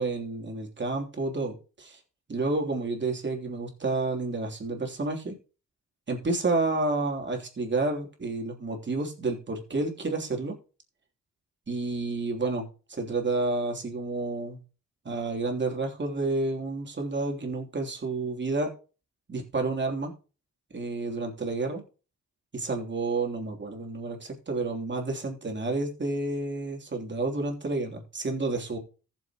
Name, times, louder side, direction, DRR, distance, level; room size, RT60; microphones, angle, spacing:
voice 1, 0.0-2.0 2.3-5.3 6.1-10.6 11.7-14.6 15.0-18.7 19.3-20.1 20.7-21.8 22.5-28.8, right 3 dB, 35° right, 2 dB, 3.2 m, -30 dB
14.5 x 7.3 x 3.0 m, 0.34 s
cardioid pair, 75°, 30 cm